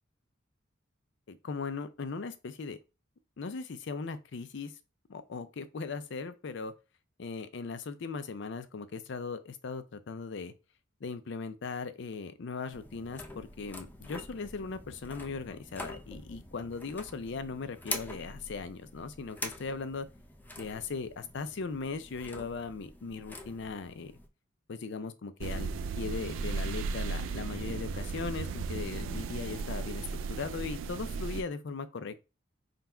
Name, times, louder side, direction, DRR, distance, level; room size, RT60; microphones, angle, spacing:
voice 1, 1.3-2.8 3.4-4.7 5.1-6.7 7.2-10.5 11.0-20.1 20.6-24.1 24.7-25.7 26.0-32.2, left 4 dB, 65° left, 0.5 m, -38 dB
sound 1, 12.7-24.3, left 2 dB, 10° left, 0.5 m, -45 dB
sound 2, 25.4-31.4, right 4 dB, 75° right, 0.3 m, -35 dB
3.9 x 2.2 x 4.3 m
head